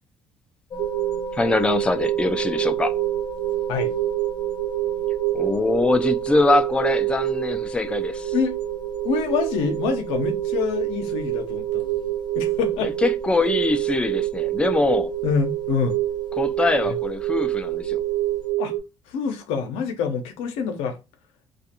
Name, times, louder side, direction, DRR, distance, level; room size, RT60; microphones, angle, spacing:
sound 1, 0.7-18.5, right 4 dB, 50° left, 0.7 m, -37 dB
sound 2, 0.8-18.8, right 14 dB, 75° right, 0.4 m, -26 dB
voice 1, 1.3-2.9 5.3-8.3 12.8-15.1 16.4-18.0, left 2 dB, 10° left, 0.4 m, -23 dB
voice 2, 9.0-12.1 12.4-12.9 15.2-16.0 16.8-16.9 18.6-18.7 19.1-21.0, left 6 dB, 85° left, 0.6 m, -26 dB
2.4 x 2.3 x 2.7 m
cardioid pair, 85°, 10 cm